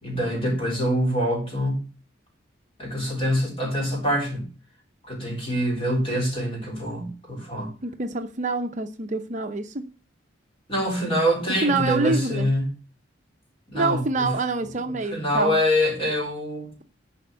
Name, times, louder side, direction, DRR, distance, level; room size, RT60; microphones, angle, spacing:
voice 1, 0.0-1.8 2.8-4.5 5.1-7.7 10.7-12.7 13.7-14.3 14.9-16.7, equal, 25° left, 3.6 m, -25 dB
voice 2, 7.8-9.8 11.6-12.5 13.7-15.6, right 3 dB, 40° right, 0.7 m, -26 dB
11.5 x 4.3 x 8.0 m
head